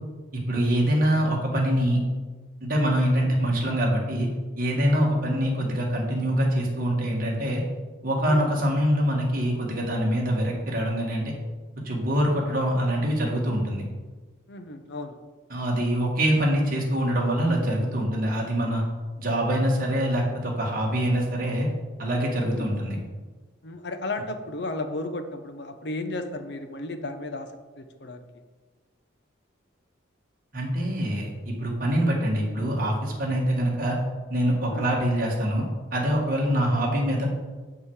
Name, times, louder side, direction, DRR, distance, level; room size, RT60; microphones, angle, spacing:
voice 1, 0.3-2.0 2.6-4.3 4.6-7.6 8.0-11.3 11.8-13.8 15.5-18.8 19.2-21.7 22.0-23.0 30.5-34.0 34.3-35.7 35.9-37.3, equal, 45° right, -2 dB, 1.8 m, -24 dB
voice 2, 14.5-15.1 22.5-22.7 23.6-27.5 27.8-28.3 34.7-34.9, left 2 dB, 55° left, 7 dB, 0.7 m, -34 dB
7.5 x 5.5 x 4.8 m, 1.3 s
head